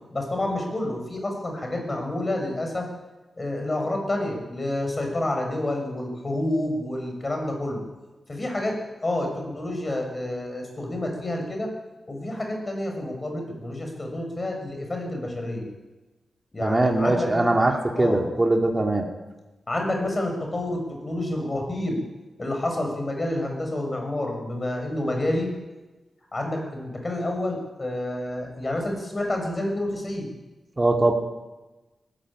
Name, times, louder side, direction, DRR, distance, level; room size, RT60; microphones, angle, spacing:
voice 1, 0.1-2.9 3.3-7.8 8.3-11.7 12.1-15.7 16.5-18.2 19.7-22.0 22.4-25.5 26.3-30.3, left 1 dB, 30° left, 2 dB, 6.7 m, -29 dB
voice 2, 16.6-17.7 18.0-19.0 30.8-31.1, right 2 dB, 20° right, 2 dB, 2.4 m, -21 dB
21.0 x 14.5 x 8.9 m, 1.1 s
wide cardioid pair, 100°, 0 cm